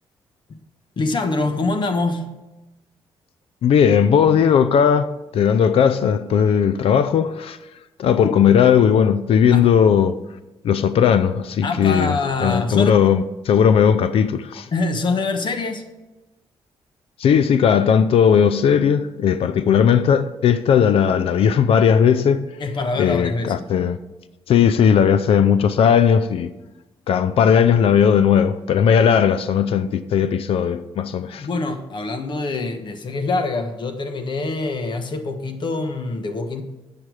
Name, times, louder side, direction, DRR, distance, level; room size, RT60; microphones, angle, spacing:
voice 1, 1.0-2.4 8.2-8.3 9.5-9.7 11.6-13.0 14.7-15.8 22.6-23.6 31.4-36.6, left 3 dB, 50° left, 1.2 m, -25 dB
voice 2, 3.6-7.6 8.0-10.2 10.6-14.7 17.2-22.6 23.0-24.0 24.5-26.5 27.1-31.5, left 7 dB, 70° left, 0.5 m, -17 dB
8.7 x 7.5 x 4.8 m
cardioid pair, 85°, 10 cm